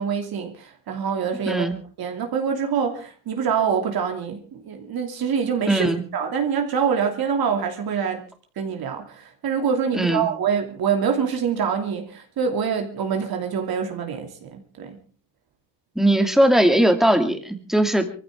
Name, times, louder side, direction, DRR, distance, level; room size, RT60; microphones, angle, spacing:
voice 1, 0.0-1.7 2.0-8.2 8.6-15.0, right 7 dB, 50° right, 2.8 m, -25 dB
voice 2, 1.5-1.8 5.7-6.0 9.9-10.3 16.0-18.1, right 1 dB, ahead, 2.4 m, -19 dB
23.0 x 15.0 x 3.7 m
cardioid pair, 120°, 46 cm